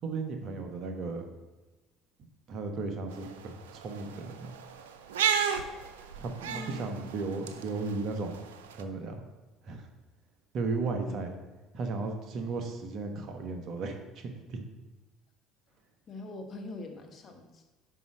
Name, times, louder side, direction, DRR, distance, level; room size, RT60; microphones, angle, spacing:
voice 1, 0.0-1.3 2.2-4.5 6.2-8.5 8.7-9.2 9.6-9.9 10.5-11.4 11.7-14.6, right 3 dB, 55° right, 5 dB, 1.2 m, -35 dB
sound 1, 3.1-8.8, right 8 dB, 85° right, 0.5 m, -34 dB
voice 2, 6.4-6.8 11.0-11.2 16.1-17.6, left 2 dB, 45° left, 4 dB, 1.4 m, -43 dB
5.5 x 5.4 x 6.4 m, 1.2 s
hypercardioid pair, 70°, 0 cm